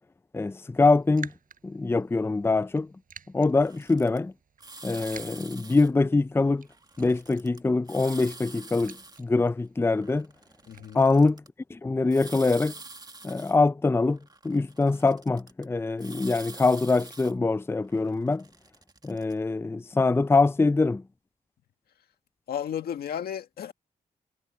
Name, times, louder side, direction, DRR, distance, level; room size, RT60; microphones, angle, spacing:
voice 1, 0.3-1.3 1.6-2.9 3.3-4.3 4.8-6.7 7.0-10.3 10.9-11.4 11.7-12.7 13.2-14.2 14.4-18.4 19.0-21.0, left 3 dB, 15° left, 0.5 m, -24 dB
Raindrop, 0.7-11.4, right 7 dB, 60° right, 6.6 m, -51 dB
sound 1, 3.6-4.2 4.6-5.9 6.7-7.6 7.8-9.2 9.9-11.5 12.1-13.6 14.1-15.6 16.0-17.3 17.9-19.3, right 3 dB, 25° right, 1.9 m, -46 dB
voice 2, 10.7-11.0 22.5-23.7, left 9 dB, 90° left, 1.9 m, -33 dB
cardioid pair, 70°, 16 cm